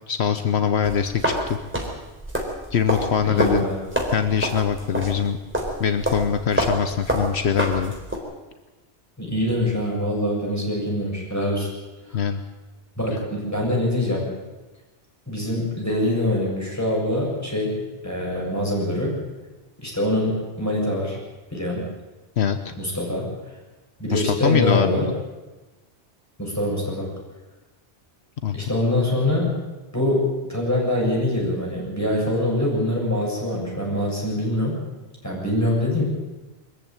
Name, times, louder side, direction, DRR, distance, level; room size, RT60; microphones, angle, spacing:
voice 1, 0.1-1.6 2.7-3.6 4.1-5.4 5.8-7.9 12.1-12.4 22.4-22.6 24.1-25.2 28.4-28.6, left 7 dB, 75° left, 9 dB, 1.2 m, -22 dB
sound 1, 0.8-8.2, equal, 10° right, 4.1 m, -27 dB
voice 2, 3.2-3.8 9.2-11.7 12.1-12.3 13.0-14.3 15.3-17.8 18.0-19.1 19.8-21.2 21.5-21.8 22.8-23.3 24.0-25.1 26.4-27.1 28.5-29.6 29.9-34.8 35.2-36.0, left 1 dB, 15° left, -3 dB, 7.2 m, -24 dB
23.5 x 14.0 x 8.9 m, 1.1 s
omnidirectional pair, 1.1 m